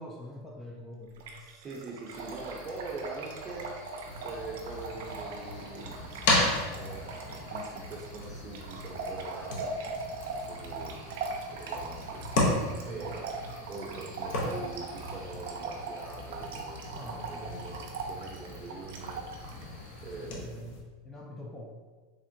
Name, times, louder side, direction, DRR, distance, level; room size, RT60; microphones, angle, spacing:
voice 1, 0.0-1.6 12.5-13.1 17.0-17.7 19.7-21.8, left 1 dB, 10° left, -2 dB, 0.4 m, -45 dB
Trickle dribble / Fill (with liquid), 1.2-19.6, right 4 dB, 75° right, 0.4 m, -40 dB
voice 2, 1.4-3.8 4.2-9.7 10.3-11.1 11.5-12.2 12.8-13.3 13.7-17.8 18.0-19.2 20.0-20.8, right 3 dB, 25° right, -2 dB, 0.6 m, -43 dB
Cricket, 2.1-20.3, left 1 dB, 85° left, 1.1 m, -52 dB
sound 1, 4.0-20.8, left 2 dB, 65° left, 0.6 m, -35 dB
3.5 x 2.1 x 2.6 m, 1.4 s
hypercardioid pair, 115°, 0 cm